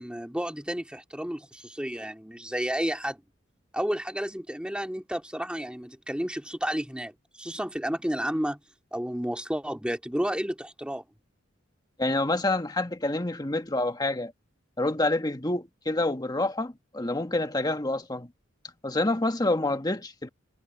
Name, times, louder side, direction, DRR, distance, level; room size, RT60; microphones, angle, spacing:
voice 1, 0.0-3.2 3.7-7.1 7.4-8.6 8.9-11.0, equal, 5° right, 2.7 m, -31 dB
voice 2, 12.0-14.3 14.8-18.3 18.8-20.3, left 2 dB, 20° left, 1.5 m, -27 dB
head